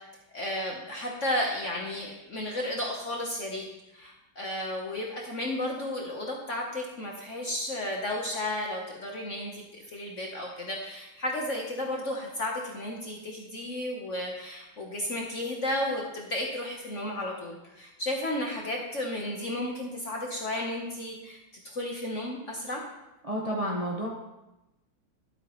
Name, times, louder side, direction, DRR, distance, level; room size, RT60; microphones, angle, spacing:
voice 1, 0.3-3.6 3.9-21.4 21.6-22.8, left 1 dB, 45° left, -1 dB, 1.1 m, -33 dB
voice 2, 23.2-24.1, equal, 25° right, -2 dB, 0.8 m, -30 dB
11.5 x 8.1 x 3.1 m, 0.97 s
omnidirectional pair, 2.2 m